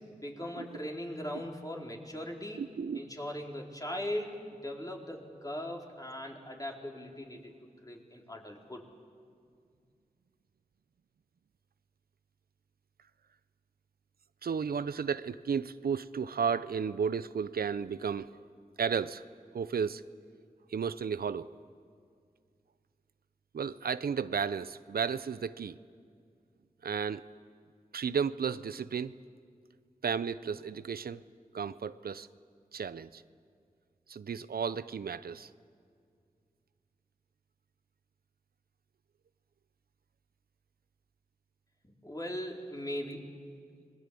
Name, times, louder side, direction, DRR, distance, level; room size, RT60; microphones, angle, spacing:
voice 1, 0.1-2.6 2.9-8.8 41.8-43.3, left 1 dB, 25° left, 0 dB, 4.5 m, -39 dB
voice 2, 2.6-3.0 14.4-18.3 18.8-19.2 19.5-20.0 20.7-21.5 23.5-25.8 26.8-27.2 27.9-29.1 30.0-31.2 31.5-32.3 32.7-33.2 34.1-35.5, right 6 dB, 85° right, 14 dB, 0.6 m, -33 dB
26.5 x 21.0 x 8.5 m, 2.2 s
cardioid pair, 45°, 15 cm